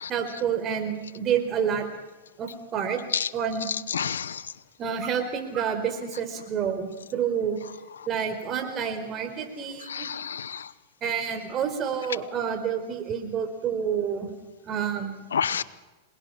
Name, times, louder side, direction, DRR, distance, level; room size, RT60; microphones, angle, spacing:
voice 1, 0.1-1.9 2.4-3.0 3.3-3.7 4.8-7.6 8.1-10.1 11.0-14.3 14.6-15.1, right 7 dB, 35° right, 6 dB, 4.6 m, -28 dB
voice 2, 3.9-4.4 9.9-10.6 15.3-15.6, left 7 dB, 90° left, 18 dB, 0.8 m, -29 dB
27.0 x 20.0 x 5.9 m, 1.2 s
hypercardioid pair, 115°, 0 cm